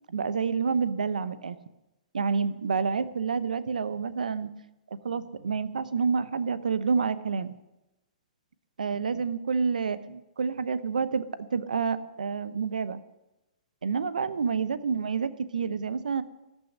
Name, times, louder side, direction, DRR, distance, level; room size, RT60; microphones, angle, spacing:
voice 1, 0.1-1.6 2.1-4.5 5.0-7.6 8.8-11.3 11.5-13.0 13.8-16.2, right 5 dB, 80° right, 15 dB, 0.9 m, -28 dB
13.5 x 6.4 x 9.7 m, 0.96 s
hypercardioid pair, 125°, 4 cm